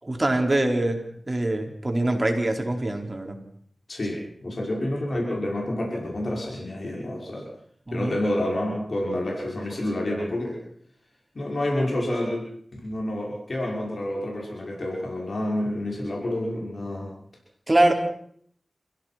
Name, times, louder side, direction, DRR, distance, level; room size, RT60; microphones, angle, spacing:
voice 1, 0.0-3.3 7.9-8.2 17.7-17.9, right 1 dB, 30° right, 3 dB, 4.6 m, -24 dB
voice 2, 3.9-7.5 7.9-10.6 11.3-17.1, left 1 dB, 65° left, -2 dB, 5.9 m, -29 dB
28.5 x 16.0 x 6.1 m, 0.64 s
cardioid pair, 50°, 0 cm